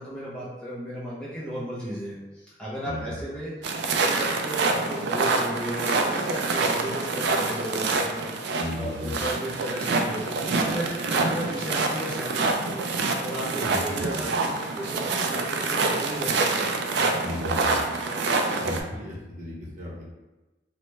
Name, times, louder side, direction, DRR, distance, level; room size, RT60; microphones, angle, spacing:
voice 1, 0.0-10.4 10.7-12.9 13.2-17.2, right 1 dB, 5° left, -8 dB, 0.6 m, -35 dB
voice 2, 2.8-3.2 8.6-9.1 13.6-14.1 17.2-17.8 18.6-20.0, left 1 dB, 40° right, -6 dB, 0.7 m, -35 dB
sound 1, 3.6-18.8, right 3 dB, 70° right, 0.3 m, -26 dB
2.9 x 2.1 x 3.0 m, 1.1 s
head